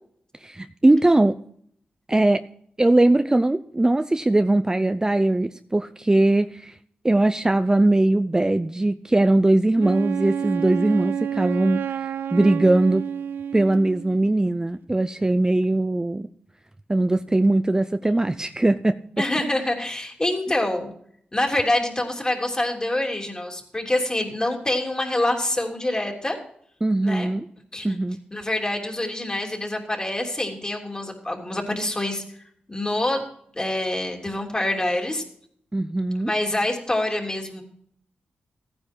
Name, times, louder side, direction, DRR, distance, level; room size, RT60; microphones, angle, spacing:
voice 1, 0.4-1.4 2.1-2.4 2.8-6.7 7.0-12.0 12.3-13.1 13.5-16.3 16.9-19.0 26.8-27.5 27.8-28.2 35.7-36.3, right 2 dB, 20° right, 10 dB, 0.5 m, -20 dB
Wind instrument woodwind instrument, 9.8-14.2, right 8 dB, 90° right, 0.4 m, -29 dB
voice 2, 19.2-20.9 21.3-26.4 27.0-27.3 27.7-28.0 28.3-32.2 32.7-33.2 33.5-35.2 36.3-37.6, left 1 dB, 25° left, 1 dB, 3.2 m, -26 dB
15.0 x 9.7 x 4.5 m, 0.65 s
cardioid pair, 60°, 3 cm